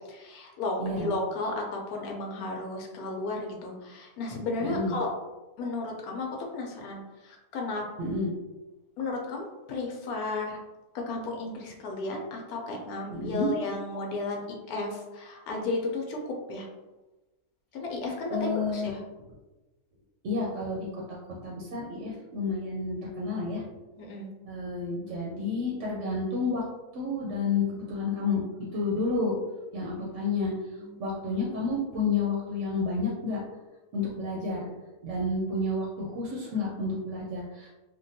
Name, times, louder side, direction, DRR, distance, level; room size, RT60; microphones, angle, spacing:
voice 1, 0.1-5.1 5.6-7.8 9.0-10.6 10.9-16.7 17.7-19.0 24.0-24.3 30.0-30.2 30.8-31.2, left 3 dB, 80° left, 1 dB, 1.1 m, -34 dB
voice 2, 0.8-1.1 4.6-4.9 8.0-8.3 13.1-13.5 18.3-18.9 20.2-23.6 24.5-26.6 26.9-28.4 28.7-29.3 29.7-30.5 31.0-33.4 33.9-34.7 35.0-37.7, left 3 dB, 65° right, -3 dB, 0.9 m, -30 dB
3.5 x 2.2 x 2.6 m, 1.1 s
omnidirectional pair, 1.6 m